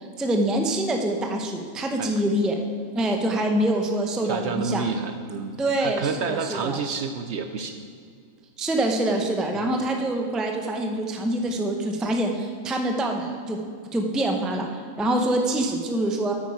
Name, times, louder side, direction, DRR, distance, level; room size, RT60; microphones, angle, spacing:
voice 1, 0.0-2.6 2.9-4.8 5.6-6.8 8.6-13.6 13.9-16.3, right 1 dB, ahead, 3 dB, 0.4 m, -25 dB
voice 2, 4.2-7.8 9.5-9.8, right 5 dB, 65° right, 7 dB, 0.7 m, -30 dB
8.9 x 8.4 x 4.8 m, 2.3 s
omnidirectional pair, 1.4 m